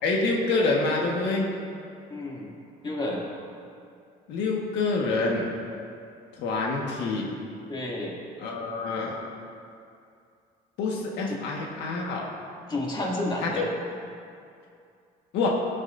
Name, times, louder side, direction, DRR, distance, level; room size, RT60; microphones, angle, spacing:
voice 1, 0.0-1.5 4.3-5.5 6.4-7.3 8.4-9.1 10.8-12.3 13.4-13.7 15.3-15.5, left 3 dB, 85° left, -1 dB, 1.6 m, -26 dB
voice 2, 2.1-2.6 2.8-3.2 7.7-8.1 11.3-11.4 12.7-13.6, left 1 dB, 25° left, -4 dB, 2.6 m, -30 dB
18.0 x 9.5 x 2.7 m, 2.4 s
cardioid pair, 110°, 17 cm